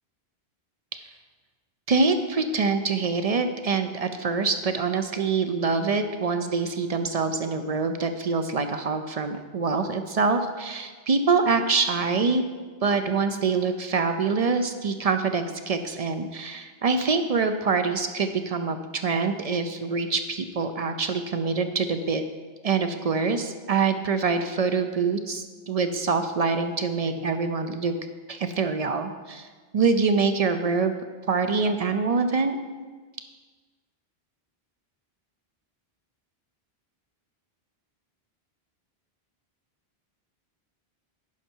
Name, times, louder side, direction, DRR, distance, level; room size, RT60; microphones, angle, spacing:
voice 1, 1.9-12.4 12.8-22.2 22.6-27.9 28.3-29.5 29.7-30.9 31.3-32.6, right 4 dB, 50° right, 8 dB, 0.4 m, -25 dB
10.5 x 5.5 x 4.5 m, 1.4 s
omnidirectional pair, 1.1 m